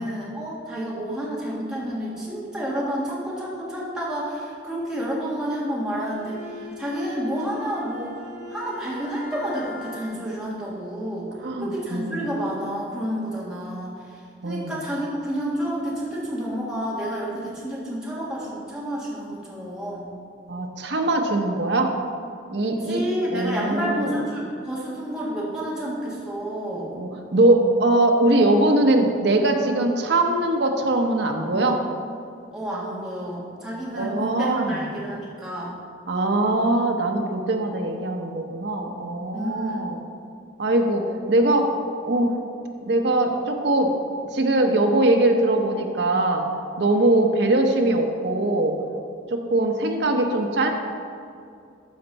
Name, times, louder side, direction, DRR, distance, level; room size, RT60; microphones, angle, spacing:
voice 1, 0.0-11.3 11.6-20.1 22.8-26.9 32.5-35.7 39.3-39.9, equal, 5° right, -7 dB, 1.8 m, -30 dB
Bowed string instrument, 6.0-10.4, left 3 dB, 40° right, 2.1 m, -41 dB
voice 2, 11.4-12.2 14.4-14.7 20.5-21.9 22.5-23.0 23.3-24.2 26.9-31.8 33.9-34.9 36.1-40.0 40.6-41.7 42.0-42.3 42.8-43.9 44.3-46.4 46.8-48.8 49.3-50.7, right 2 dB, 60° right, 3 dB, 0.8 m, -21 dB
13.0 x 4.5 x 4.1 m, 2.5 s
head